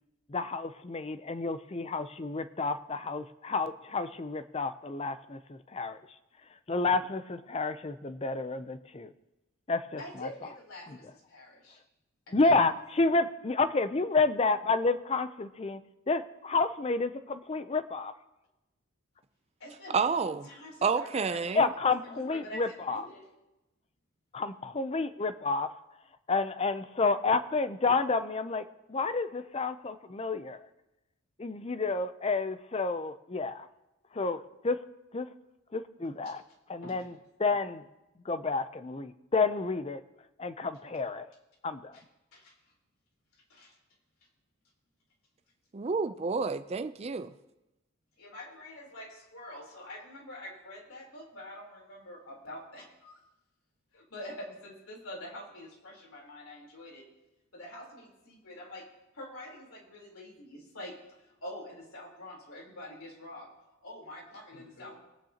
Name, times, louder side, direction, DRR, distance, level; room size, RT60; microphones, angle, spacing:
voice 1, 0.3-6.0 6.7-9.1 9.7-10.3 10.9-11.0 12.3-15.8 16.1-18.1 21.5-23.1 24.3-25.7 26.3-30.6 31.4-33.7 34.1-34.8 35.1-35.3 35.7-36.4 36.7-37.1 37.4-37.8 38.3-40.0 40.4-41.3 41.6-42.0, left 3 dB, 30° left, 12 dB, 0.5 m, -30 dB
voice 2, 10.0-11.8 12.3-12.5 19.6-23.3 36.2-36.3 36.8-37.0 41.9-42.0 42.3-42.5 43.5-43.8 48.2-53.2 53.9-57.0 57.5-58.9 59.1-63.5 63.8-65.0, left 1 dB, 85° left, -2 dB, 3.7 m, -46 dB
voice 3, 19.9-20.5 20.8-21.7 45.7-47.3, right 5 dB, 30° right, 10 dB, 0.4 m, -29 dB
21.0 x 9.0 x 2.9 m, 0.97 s
head